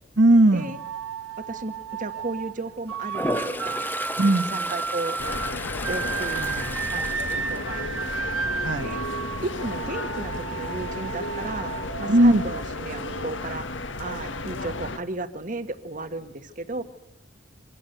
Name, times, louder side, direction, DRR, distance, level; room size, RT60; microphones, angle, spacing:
voice 1, 0.2-0.7 4.2-4.5 6.4-6.9 8.6-8.9 12.1-12.4, right 1 dB, 60° right, 6 dB, 1.2 m, -19 dB
sound 1, 0.6-13.4, right 6 dB, 80° right, 1.4 m, -33 dB
voice 2, 1.4-3.9 4.3-5.2 5.9-6.4 6.9-8.1 8.8-9.0 9.4-16.8, right 2 dB, 40° right, 9 dB, 1.5 m, -34 dB
Toilet flush, 3.0-8.2 8.6-9.0 13.5-13.6 13.9-14.6, left 1 dB, 10° left, 1.0 m, -34 dB
sound 2, 5.2-15.0, left 2 dB, 65° left, 1.7 m, -33 dB
26.0 x 24.0 x 8.0 m, 0.80 s
head